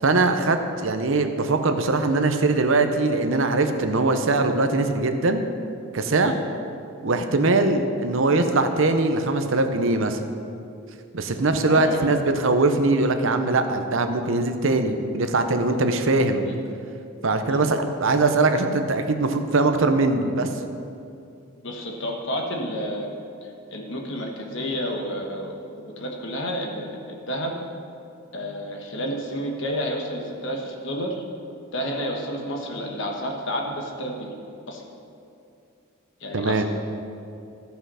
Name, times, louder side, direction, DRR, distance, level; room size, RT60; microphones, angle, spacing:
voice 1, 0.0-5.5 5.9-6.4 7.0-10.2 11.1-16.4 17.2-20.5 36.3-36.6, right 3 dB, 65° right, 7 dB, 0.7 m, -21 dB
voice 2, 11.6-12.1 16.4-16.6 17.5-17.6 21.6-23.1 23.4-25.5 25.8-27.5 28.3-31.2 31.7-34.4 34.7-34.8 36.2-36.6, equal, 60° left, 1 dB, 1.4 m, -30 dB
13.5 x 5.8 x 5.7 m, 2.6 s
head